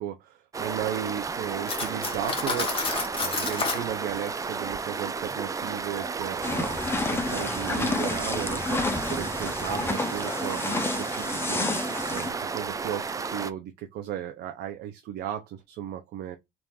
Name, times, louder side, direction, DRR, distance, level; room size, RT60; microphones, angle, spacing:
voice 1, 0.0-2.9 3.2-16.4, right 10 dB, 75° right, 0.6 m, -35 dB
sound 1, 0.5-13.5, right 5 dB, 20° right, 0.4 m, -33 dB
Cutlery silverware, 1.7-3.9, left 4 dB, 30° left, 1.2 m, -29 dB
sound 2, 6.4-12.3, left 3 dB, 15° left, 0.7 m, -30 dB
3.6 x 2.6 x 4.6 m
cardioid pair, 110°, 17 cm